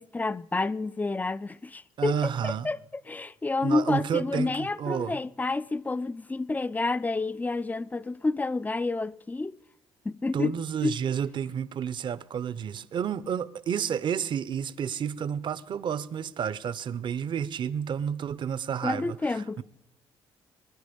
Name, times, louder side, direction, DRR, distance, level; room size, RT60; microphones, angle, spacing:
voice 1, 0.0-2.8 3.1-9.6 10.0-10.6 10.8-11.0 18.8-19.6, left 3 dB, 15° left, 0.4 m, -29 dB
voice 2, 2.0-2.7 3.6-5.2 10.3-19.6, right 8 dB, 55° right, 0.7 m, -30 dB
20.5 x 10.5 x 5.2 m
cardioid pair, 90°, 10 cm